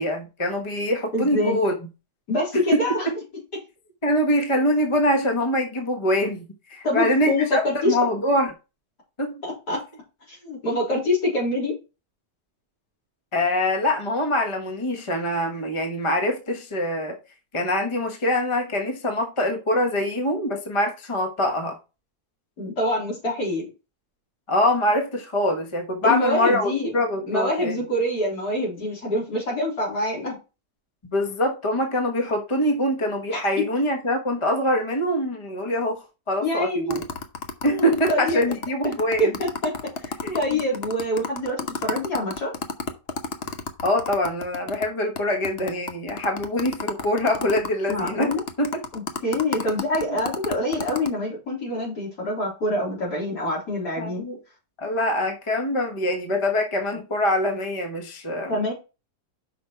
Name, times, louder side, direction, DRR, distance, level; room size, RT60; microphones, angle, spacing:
voice 1, 0.0-1.7 2.7-2.8 4.0-8.5 9.2-9.4 13.3-17.2 17.5-21.8 24.5-27.8 31.0-37.0 37.6-39.4 40.2-40.6 43.8-48.8 50.1-50.2 54.0-54.4 54.8-58.6, left 1 dB, 20° left, 1.1 m, -24 dB
voice 2, 1.1-1.6 2.3-3.1 6.8-7.9 9.4-9.8 10.3-11.8 22.6-23.6 26.0-26.9 27.2-30.4 33.3-33.4 36.4-37.0 37.7-38.4 39.2-39.7 40.0-42.5 47.9-48.4 48.9-54.2 58.5-58.7, left 1 dB, 80° left, 4.2 m, -25 dB
sound 1, 36.9-44.9 45.2-45.3 45.4-51.1, left 4 dB, 50° left, 0.9 m, -31 dB
6.0 x 5.3 x 4.4 m
omnidirectional pair, 1.7 m